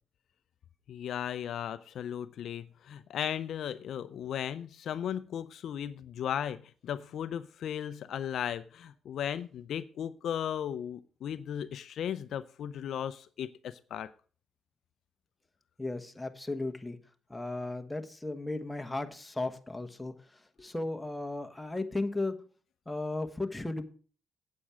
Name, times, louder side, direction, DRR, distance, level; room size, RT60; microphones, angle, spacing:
voice 1, 0.9-14.1, left 9 dB, 70° left, 0.5 m, -36 dB
voice 2, 15.8-17.0 17.3-22.3 22.9-23.9, left 2 dB, 10° left, 1.3 m, -35 dB
8.7 x 8.5 x 4.8 m
cardioid pair, 90°, 0 cm